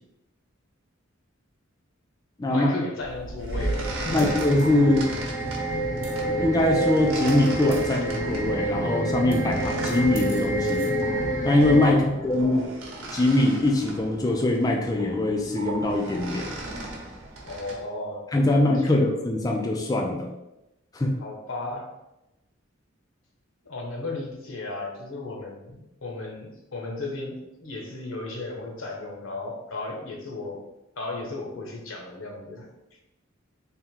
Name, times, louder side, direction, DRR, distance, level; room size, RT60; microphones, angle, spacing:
voice 1, 2.5-4.3 11.8-12.1 17.4-19.0 21.2-21.9 23.6-30.6 31.0-33.0, left 2 dB, 80° left, 0 dB, 0.9 m, -35 dB
sound 1, 3.0-17.8, right 2 dB, 85° right, 1.0 m, -37 dB
sound 2, 3.5-11.9, right 1 dB, 40° left, 0.9 m, -28 dB
voice 2, 4.1-5.1 6.3-10.9 11.4-12.6 13.1-16.5 18.3-20.3 20.9-21.1, left 1 dB, 20° left, 0 dB, 0.4 m, -22 dB
3.5 x 2.1 x 4.4 m, 0.93 s
head